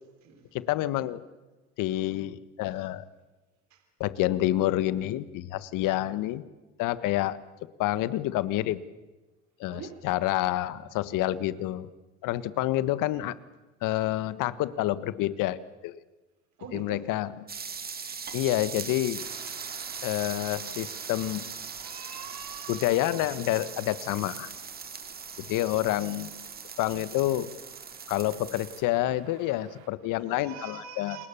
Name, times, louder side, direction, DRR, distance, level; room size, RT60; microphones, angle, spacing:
voice 1, 0.5-1.2 1.8-3.0 4.0-6.5 6.8-7.4 7.8-8.8 9.6-11.9 12.2-13.3 13.8-16.0 16.7-17.3 18.3-19.2 20.0-21.5 22.7-24.5 25.4-26.3 26.8-27.6 28.1-31.2, left 15 dB, 65° left, 15 dB, 1.5 m, -28 dB
voice 2, 9.7-10.0 16.6-17.1 21.7-23.2 30.0-31.3, right 7 dB, 50° right, 6 dB, 4.2 m, -44 dB
sound 1, 17.5-28.8, right 5 dB, 25° right, 2.2 m, -40 dB
sound 2, 19.2-29.9, right 9 dB, 70° right, 3.4 m, -52 dB
29.5 x 21.0 x 7.2 m, 1.2 s
supercardioid pair, 90°, 35 cm